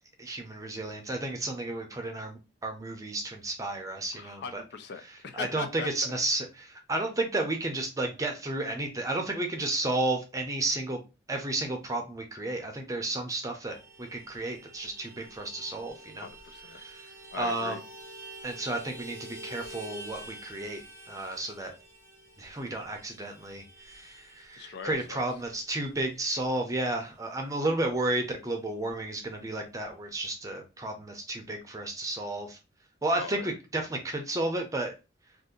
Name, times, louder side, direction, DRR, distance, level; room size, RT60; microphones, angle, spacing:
voice 1, 0.2-4.6 5.3-11.0 11.3-16.3 16.7-17.0 17.4-17.8 18.4-21.7 22.4-32.6 33.0-34.9, right 2 dB, 15° right, 0.6 m, -32 dB
voice 2, 4.1-6.1 16.2-16.8 17.3-17.8 24.5-25.3 33.1-33.5, left 5 dB, 60° left, 0.4 m, -40 dB
Vehicle horn car horn honking, 13.7-27.6 27.9-28.0 28.3-28.5 28.7-29.4, right 1 dB, 15° left, 1.5 m, -49 dB
2.7 x 2.5 x 3.7 m
head